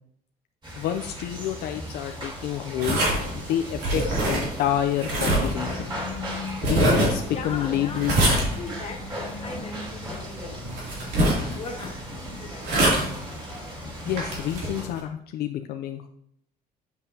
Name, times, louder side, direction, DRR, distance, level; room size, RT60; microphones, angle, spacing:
sound 1, 0.6-14.9, equal, 30° right, 3.3 m, -38 dB
voice 1, 0.8-3.0 3.3-5.9 6.6-8.2 11.2-11.6 14.0-16.1, left 11 dB, 70° left, 6 dB, 0.5 m, -29 dB
sound 2, 2.8-15.0, right 1 dB, 85° right, 2.8 m, -26 dB
voice 2, 7.3-10.6 11.5-12.7, left 4 dB, 40° left, 2 dB, 1.8 m, -39 dB
7.8 x 7.4 x 2.8 m, 0.71 s
cardioid pair, 110°, 17 cm